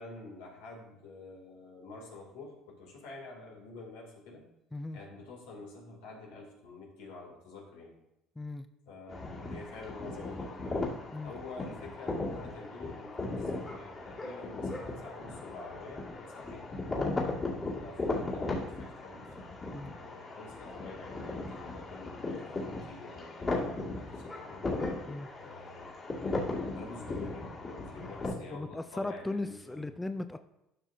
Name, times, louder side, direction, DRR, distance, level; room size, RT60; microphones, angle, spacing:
voice 1, 0.0-4.4 4.9-7.9 8.9-10.8 11.2-16.7 17.6-19.3 19.9-24.8 25.4-25.9 26.5-29.9, left 3 dB, 85° left, -1 dB, 2.7 m, -48 dB
voice 2, 8.4-8.7 11.1-11.3 17.0-17.3 19.7-19.9 25.1-25.3 28.5-30.4, left 2 dB, 10° left, 9 dB, 0.5 m, -37 dB
sound 1, 9.1-28.3, left 2 dB, 30° left, 2.2 m, -37 dB
12.0 x 5.9 x 2.7 m, 0.86 s
supercardioid pair, 95°, 0 cm